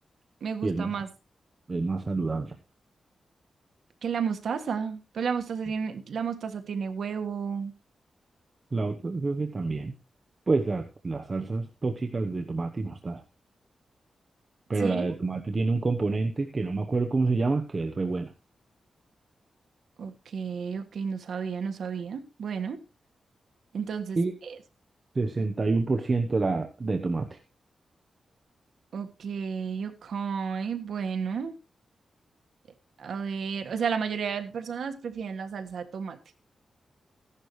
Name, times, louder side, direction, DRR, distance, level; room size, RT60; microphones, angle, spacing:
voice 1, 0.4-1.1 4.0-7.7 14.8-15.1 20.0-22.8 23.7-24.2 28.9-31.5 33.0-36.2, right 6 dB, 80° right, 7 dB, 1.6 m, -32 dB
voice 2, 1.7-2.5 8.7-9.9 10.5-13.2 14.7-18.3 24.2-24.4 25.1-27.4, right 3 dB, 30° right, 5 dB, 1.0 m, -28 dB
15.5 x 11.0 x 3.2 m, 0.30 s
wide cardioid pair, 145°, 0 cm